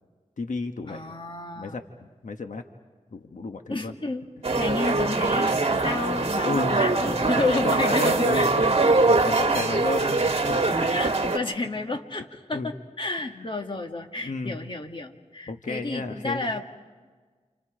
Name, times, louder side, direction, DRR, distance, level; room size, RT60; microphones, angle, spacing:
voice 1, 0.4-1.1 1.6-2.6 3.1-3.9 6.4-10.9 12.5-12.7 13.3-13.5 14.2-14.6 15.5-16.5, left 3 dB, 90° left, 5 dB, 1.3 m, -32 dB
voice 2, 0.9-1.7 3.7-4.2 4.6-8.5 8.8-8.9 10.9-16.6, left 2 dB, 40° left, 3 dB, 1.8 m, -31 dB
sound 1, 4.4-11.4, right 3 dB, 50° right, 1.7 m, -23 dB
30.0 x 28.0 x 5.0 m, 1.4 s
wide cardioid pair, 90°, 13 cm